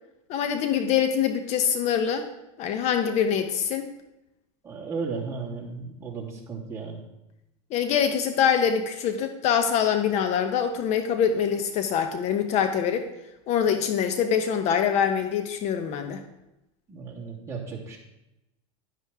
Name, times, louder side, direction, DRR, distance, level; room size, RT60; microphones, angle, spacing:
voice 1, 0.3-2.3 2.6-3.9 7.7-13.1 13.5-16.2, left 8 dB, 45° left, 7 dB, 1.0 m, -24 dB
voice 2, 4.6-7.0 16.9-18.0, right 4 dB, 15° right, -4 dB, 3.3 m, -35 dB
11.5 x 10.5 x 3.6 m, 0.92 s
supercardioid pair, 120°, 17 cm